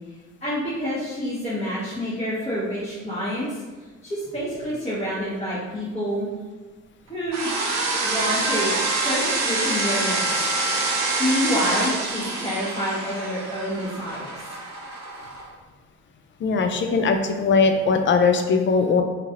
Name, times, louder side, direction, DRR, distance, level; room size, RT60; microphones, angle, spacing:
voice 1, 0.4-3.6 4.0-6.3 7.1-7.5 8.0-8.7 9.0-10.5 11.2-14.6, equal, 20° left, -12 dB, 1.1 m, -28 dB
sound 1, 7.3-15.4, right 2 dB, 60° right, 0.7 m, -26 dB
voice 2, 16.4-19.0, left 4 dB, 40° left, 6 dB, 0.4 m, -20 dB
2.9 x 2.8 x 2.5 m, 1.3 s
cardioid pair, 90°, 30 cm